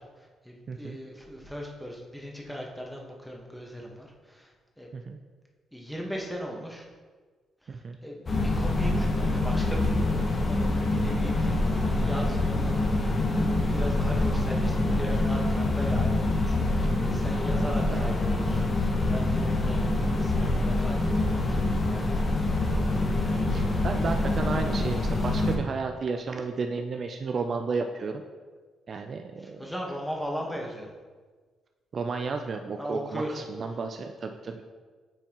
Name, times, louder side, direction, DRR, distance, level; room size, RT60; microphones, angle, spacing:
voice 1, 0.0-4.9 5.7-6.9 7.6-13.0 13.2-22.2 29.4-30.9 32.8-33.4 34.4-34.5, equal, ahead, -1 dB, 1.3 m, -38 dB
sound 1, 8.3-25.6, left 2 dB, 35° left, 1.0 m, -25 dB
voice 2, 23.3-28.2 28.9-29.6 31.9-34.6, right 4 dB, 50° right, 5 dB, 0.4 m, -33 dB
8.8 x 4.5 x 3.0 m, 1.4 s
cardioid pair, 85°, 0 cm